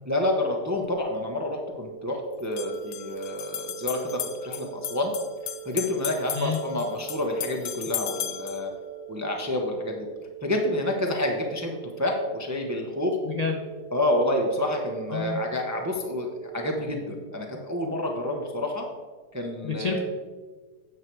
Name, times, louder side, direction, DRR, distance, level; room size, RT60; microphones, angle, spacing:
voice 1, 0.0-5.1 5.6-8.7 9.1-10.1 10.4-13.2 13.9-18.9 19.3-20.0, left 1 dB, 15° right, 1 dB, 0.6 m, -28 dB
sound 1, 0.8-0.9 2.4-8.7, left 10 dB, 60° left, 0.9 m, -36 dB
sound 2, 1.8-16.8, right 15 dB, 80° right, 1.4 m, -43 dB
voice 2, 13.2-13.6 15.1-15.4 19.6-20.0, left 5 dB, 40° left, 1 dB, 0.5 m, -28 dB
9.5 x 6.7 x 4.6 m, 1.4 s
omnidirectional pair, 1.9 m